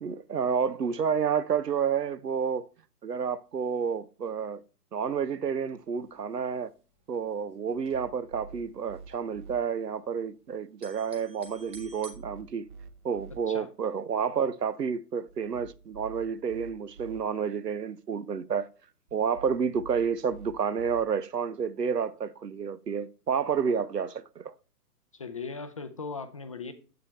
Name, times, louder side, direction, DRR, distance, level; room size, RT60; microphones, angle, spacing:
voice 1, 0.0-2.7 3.0-4.6 4.9-6.7 7.1-12.7 13.0-18.7 19.1-24.5, right 6 dB, 85° right, 0.9 m, -30 dB
sound 1, 5.8-6.2 6.4-6.5 6.7-8.4 8.7-10.3 10.6-12.1, right 3 dB, 10° right, 1.2 m, -51 dB
sound 2, 7.7-9.6 11.5-13.4 15.3-17.2 19.1-21.0, right 4 dB, 30° right, 1.2 m, -48 dB
voice 2, 25.1-26.7, left 4 dB, 25° left, 0.5 m, -38 dB
9.5 x 8.1 x 3.2 m
figure-of-eight pair, 130°, 47 cm